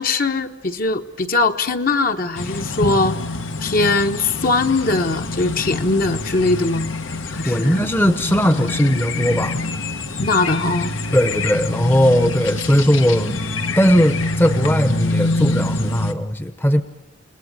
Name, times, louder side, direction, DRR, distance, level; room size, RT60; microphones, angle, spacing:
voice 1, 0.0-3.1 3.6-6.9 7.3-7.8 10.2-10.9, left 3 dB, 45° left, 6 dB, 1.2 m, -20 dB
sound 1, 2.4-16.1, left 2 dB, 85° left, 1.6 m, -25 dB
voice 2, 7.2-9.6 11.1-13.4 13.8-16.8, equal, 10° left, 9 dB, 0.8 m, -18 dB
30.0 x 19.0 x 8.8 m, 1.0 s
head